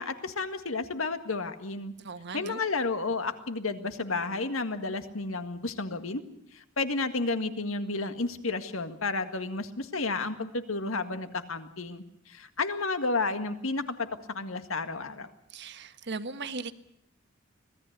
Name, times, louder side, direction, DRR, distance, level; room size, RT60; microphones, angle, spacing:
voice 1, 0.0-1.9 2.3-6.2 6.5-15.3, left 3 dB, 80° left, 9 dB, 1.8 m, -32 dB
voice 2, 2.0-2.6 15.5-16.7, right 4 dB, 55° right, 10 dB, 1.4 m, -38 dB
25.5 x 18.0 x 8.1 m, 0.72 s
head